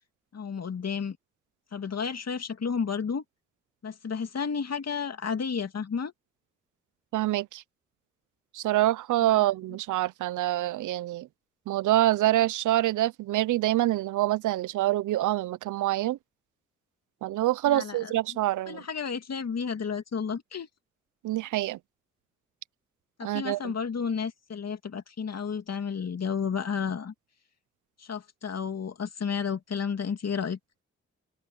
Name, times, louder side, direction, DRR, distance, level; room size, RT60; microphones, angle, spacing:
voice 1, 0.3-1.2 1.7-3.2 3.8-6.1 9.3-9.5 17.6-18.1 18.7-20.7 23.2-27.1 28.0-30.6, left 6 dB, 55° left, 2.7 m, -32 dB
voice 2, 7.1-7.6 8.5-11.3 11.7-16.2 17.2-18.8 21.2-21.8 23.2-23.6, right 15 dB, 85° right, 0.7 m, -26 dB
open air
supercardioid pair, 40°, 30 cm